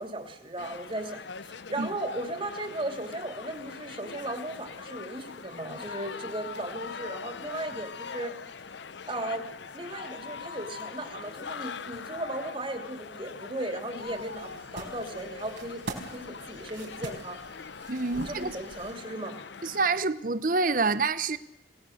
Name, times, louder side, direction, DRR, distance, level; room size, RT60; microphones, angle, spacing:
voice 1, 0.0-8.3 9.1-9.5 9.7-17.4 18.1-19.4, right 1 dB, 30° right, 6 dB, 2.8 m, -36 dB
sound 1, 0.6-20.0, left 5 dB, 70° left, 0.7 m, -42 dB
sound 2, 13.9-18.9, right 2 dB, 85° right, 4.5 m, -43 dB
voice 2, 17.9-18.6 19.6-21.4, right 3 dB, 45° right, 14 dB, 0.9 m, -27 dB
26.5 x 18.0 x 6.6 m, 0.85 s
head